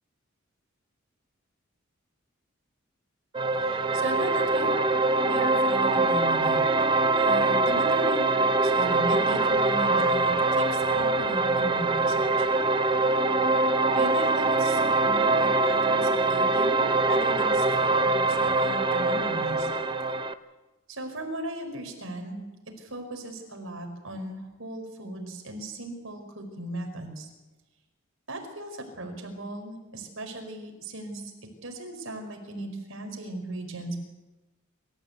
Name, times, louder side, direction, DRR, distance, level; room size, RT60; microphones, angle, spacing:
sound 1, 3.3-20.3, right 2 dB, 25° right, 0.7 m, -23 dB
voice 1, 3.6-4.8 5.2-8.2 8.6-12.5 13.9-19.7 20.9-22.4 22.8-27.3 28.3-31.3 31.6-34.0, right 1 dB, 70° right, 4 dB, 4.8 m, -37 dB
27.0 x 14.0 x 8.3 m, 1.1 s
head